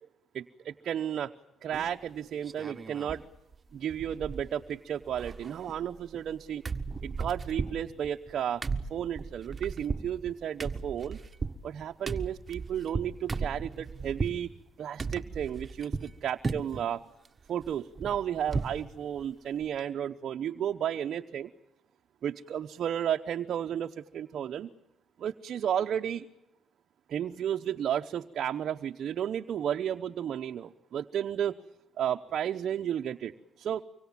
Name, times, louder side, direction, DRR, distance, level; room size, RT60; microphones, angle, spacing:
voice 1, 0.3-1.3 1.6-3.2 3.7-6.6 7.0-8.6 8.9-11.2 11.6-14.5 14.8-17.0 17.5-21.5 22.2-24.7 25.2-26.3 27.1-31.6 32.0-33.8, right 9 dB, 65° right, 4 dB, 0.9 m, -33 dB
sound 1, 1.7-2.1 2.4-3.2 3.5-3.6 3.9-4.7 5.0-6.4 6.6-14.4 15.0-16.1 16.4-16.9 17.2-18.8 19.2-19.3 19.6-19.8, right 4 dB, 30° right, 1.6 m, -36 dB
25.0 x 24.0 x 7.4 m, 0.86 s
cardioid pair, 90°, 0 cm